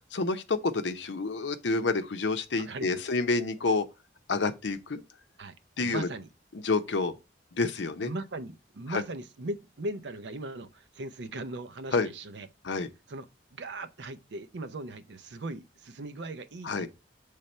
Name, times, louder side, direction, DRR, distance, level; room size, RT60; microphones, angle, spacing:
voice 1, 0.1-3.9 4.3-5.0 5.8-6.1 6.5-7.1 7.5-8.1 8.9-9.0 11.9-12.1 12.6-12.9 16.6-16.9, left 3 dB, 80° left, 0.7 m, -28 dB
voice 2, 2.6-3.0 5.4-5.5 5.8-6.3 8.0-12.5 13.1-16.9, right 2 dB, 75° right, 0.6 m, -39 dB
6.5 x 3.4 x 4.3 m
head